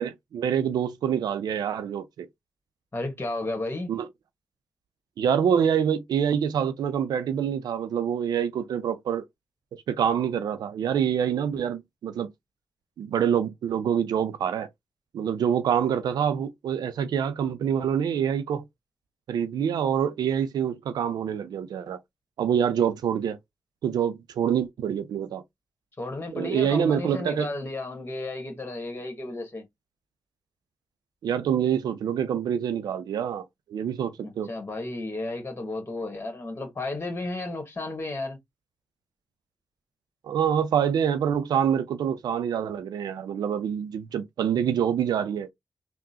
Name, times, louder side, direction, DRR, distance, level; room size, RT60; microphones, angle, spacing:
voice 1, 0.0-2.3 3.9-4.1 5.2-9.3 9.9-12.3 13.0-14.7 15.1-18.6 19.3-22.0 22.4-23.4 23.8-25.4 26.3-27.5 31.2-34.5 40.2-45.5, right 8 dB, 80° right, 0.4 m, -26 dB
voice 2, 2.9-3.9 26.0-29.7 34.2-38.4, left 2 dB, 35° left, 1.3 m, -33 dB
3.7 x 2.1 x 2.7 m
supercardioid pair, 45°, 7 cm